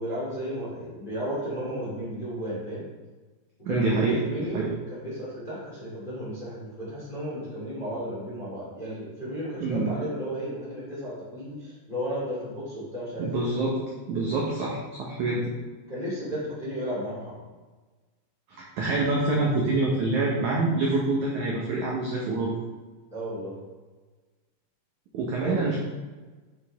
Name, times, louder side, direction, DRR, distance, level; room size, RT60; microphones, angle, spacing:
voice 1, 0.0-2.9 3.6-13.3 15.9-17.5 23.1-23.6 25.4-25.8, equal, 15° left, -7 dB, 1.8 m, -34 dB
voice 2, 3.6-4.7 9.6-9.9 13.2-13.8 14.1-15.5 18.8-22.5 25.1-25.8, right 2 dB, 75° right, -3 dB, 1.8 m, -26 dB
9.3 x 5.5 x 3.5 m, 1.3 s
omnidirectional pair, 4.8 m